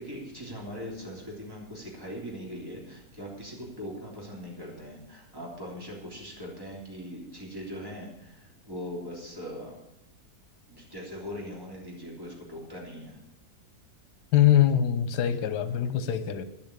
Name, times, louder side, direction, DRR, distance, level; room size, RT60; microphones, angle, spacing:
voice 1, 0.0-9.7 10.7-13.2, equal, 15° right, 3.3 m, -40 dB
voice 2, 14.3-16.4, left 11 dB, 80° left, 1.4 m, -23 dB
11.0 x 7.3 x 8.4 m
omnidirectional pair, 1.7 m